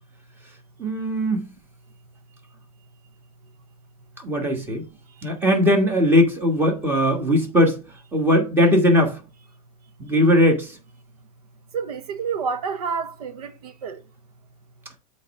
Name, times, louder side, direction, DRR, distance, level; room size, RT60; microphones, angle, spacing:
voice 1, 0.8-1.5 4.2-4.8 5.2-7.8 8.1-9.2 10.0-10.8, left 1 dB, 10° right, 1.5 m, -19 dB
voice 2, 11.7-14.0, right 6 dB, 85° right, 1.0 m, -29 dB
8.0 x 3.2 x 5.4 m
supercardioid pair, 155°, 19 cm